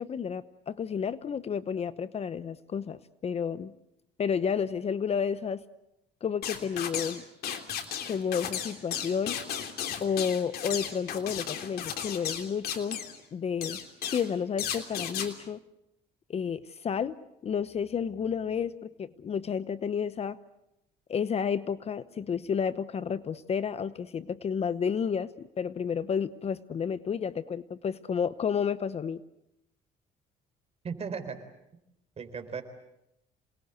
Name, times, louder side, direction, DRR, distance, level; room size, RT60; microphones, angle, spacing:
voice 1, 0.0-3.7 4.2-5.6 6.2-7.2 8.1-9.4 10.0-13.0 13.3-13.8 14.1-15.6 16.3-17.2 17.4-20.4 21.1-29.2, left 7 dB, 40° left, 15 dB, 0.9 m, -31 dB
sound 1, 6.4-7.2 7.4-13.2 13.6-14.3 14.6-15.3, left 8 dB, 65° left, 3.2 m, -34 dB
voice 2, 30.8-31.4 32.2-32.6, right 5 dB, 35° right, 8 dB, 4.1 m, -36 dB
28.0 x 20.5 x 8.2 m, 0.86 s
cardioid pair, 110°, 17 cm